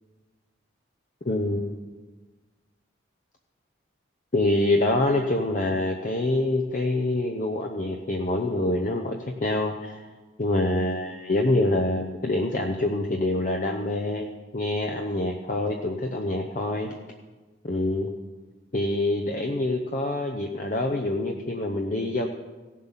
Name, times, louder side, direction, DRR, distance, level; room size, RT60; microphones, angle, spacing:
voice 1, 1.2-1.8 4.3-10.1 10.4-16.9 17.6-18.1 18.7-22.2, left 2 dB, 45° left, 2 dB, 0.8 m, -26 dB
16.5 x 7.4 x 5.8 m, 1.3 s
head